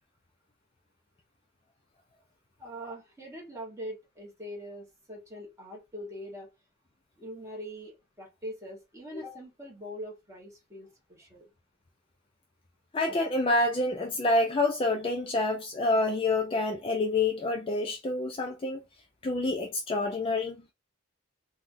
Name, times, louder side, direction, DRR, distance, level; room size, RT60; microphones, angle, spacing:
voice 1, 2.6-6.5 7.2-11.5, equal, 15° right, 1.3 m, -42 dB
voice 2, 12.9-18.8 19.2-20.6, left 2 dB, 25° left, 0.4 m, -27 dB
3.4 x 2.3 x 2.6 m
head